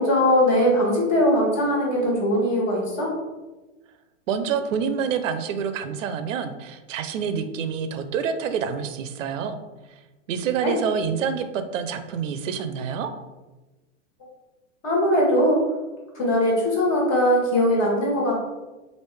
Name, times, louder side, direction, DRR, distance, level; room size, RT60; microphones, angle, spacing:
voice 1, 0.0-3.1 10.6-10.8 14.8-15.6 16.1-18.5, equal, 40° left, -3 dB, 1.4 m, -20 dB
voice 2, 4.3-9.6 10.3-13.1, right 7 dB, 90° right, 9 dB, 0.5 m, -27 dB
3.1 x 2.5 x 3.3 m, 1.1 s
hypercardioid pair, 130°, 37 cm